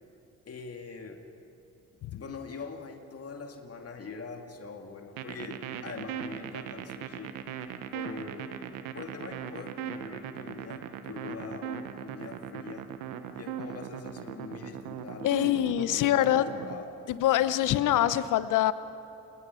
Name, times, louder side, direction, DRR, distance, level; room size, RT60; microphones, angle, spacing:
voice 1, 0.5-1.2 2.1-7.4 7.9-12.9 13.4-16.9 17.4-17.9, left 4 dB, 45° left, 4 dB, 2.2 m, -43 dB
sound 1, 5.2-16.7, right 9 dB, 80° right, 1.3 m, -38 dB
voice 2, 15.2-16.5 17.1-18.7, left 13 dB, 65° left, 14 dB, 0.9 m, -25 dB
27.0 x 21.5 x 5.7 m, 2.9 s
supercardioid pair, 60°, 34 cm